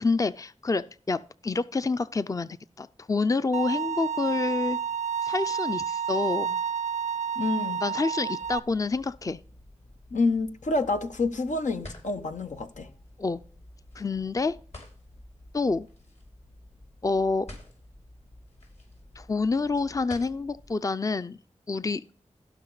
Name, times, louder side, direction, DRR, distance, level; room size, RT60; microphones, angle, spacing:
voice 1, 0.0-2.5 2.8-4.8 5.2-6.6 7.8-9.4 13.2-13.4 14.0-14.6 15.5-15.9 17.0-17.5 19.2-21.4 21.7-22.0, left 3 dB, 30° left, 0.5 m, -27 dB
Bowed string instrument, 3.5-8.6, right 7 dB, 75° right, 0.5 m, -30 dB
voice 2, 7.4-7.8 10.1-12.9, left 3 dB, 85° left, 1.0 m, -28 dB
sound 1, 8.4-20.7, left 1 dB, 65° left, 5.0 m, -50 dB
16.0 x 5.8 x 4.0 m
cardioid pair, 45°, 12 cm